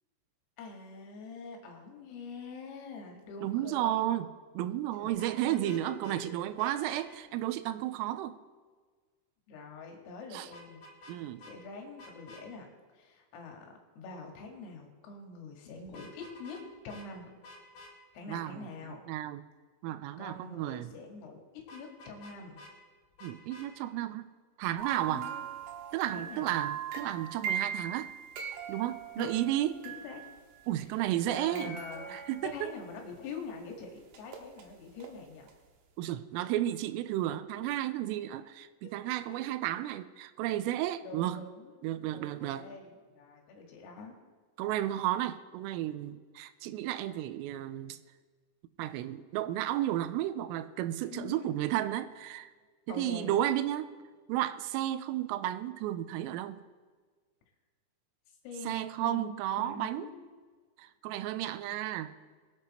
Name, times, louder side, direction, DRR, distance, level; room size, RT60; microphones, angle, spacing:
voice 1, 0.6-4.1 5.0-6.8 9.5-10.8 11.5-12.7 12.9-17.4 18.1-19.0 20.2-22.6 25.1-25.5 26.1-26.5 29.2-29.4 29.9-30.3 31.3-32.1 32.4-35.5 38.8-39.0 39.3-39.6 41.0-41.9 42.1-44.2 51.0-51.5 52.9-53.4 58.4-60.2, left 4 dB, 80° left, 1 dB, 4.5 m, -45 dB
voice 2, 3.4-4.3 4.5-8.4 10.3-10.5 11.1-11.4 18.3-18.7 19.1-19.4 19.8-20.9 23.2-24.3 24.6-25.3 25.9-28.1 28.7-29.7 30.7-31.8 32.1-32.7 36.0-41.4 41.8-42.7 44.6-48.0 48.8-52.5 52.9-53.9 54.3-56.6 58.7-60.1 60.8-62.1, right 13 dB, 90° right, 13 dB, 3.2 m, -33 dB
Vehicle horn car horn honking, 5.1-6.2 6.6-7.1 10.5-11.2 11.4-11.5 12.0-12.4 15.9-16.6 16.9-17.1 17.4-17.9 21.7-22.7 23.2-23.7, left 1 dB, 65° left, 4.3 m, -50 dB
sound 1, 24.8-30.7 31.3-33.4 34.1-35.1 35.5-35.6, right 8 dB, 70° right, 2.8 m, -39 dB
22.5 x 8.1 x 4.3 m, 1.5 s
omnidirectional pair, 5.8 m